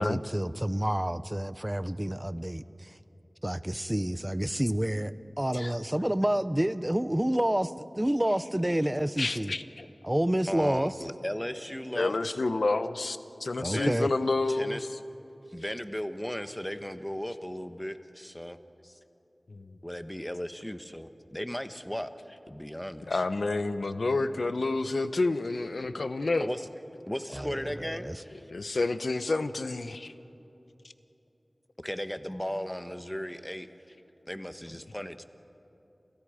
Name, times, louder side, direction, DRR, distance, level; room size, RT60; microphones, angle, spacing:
voice 1, 0.0-2.9 3.4-9.5 10.0-10.9 13.6-14.1 27.3-28.2, right 1 dB, 15° right, 14 dB, 0.8 m, -29 dB
voice 2, 9.2-9.9 11.9-14.9 19.5-19.7 23.1-26.5 28.5-30.1, left 3 dB, 85° left, 11 dB, 0.9 m, -29 dB
voice 3, 10.5-12.4 13.7-14.0 14.5-14.8 15.5-18.6 18.8-19.0 19.8-23.2 26.4-26.7 27.1-28.5 31.8-34.0 34.3-35.2, equal, 10° left, 9 dB, 1.2 m, -36 dB
29.5 x 28.0 x 5.1 m, 3.0 s
wide cardioid pair, 55°, 0 cm